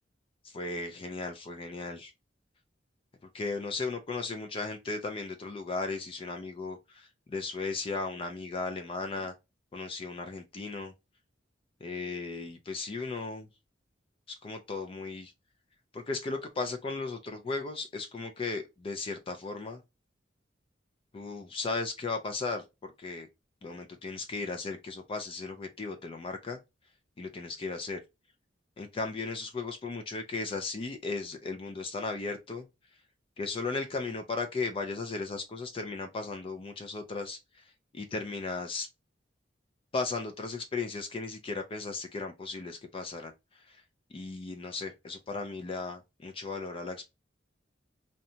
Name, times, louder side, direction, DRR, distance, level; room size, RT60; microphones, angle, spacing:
voice 1, 0.4-2.1 3.3-9.3 9.7-10.9 11.8-13.5 14.3-15.3 15.9-19.8 21.1-23.3 23.6-26.6 27.2-28.0 28.8-32.7 33.4-38.9 39.9-43.3 43.6-43.8 44.1-47.1, left 3 dB, 30° left, 0.3 m, -36 dB
2.7 x 2.2 x 2.6 m
head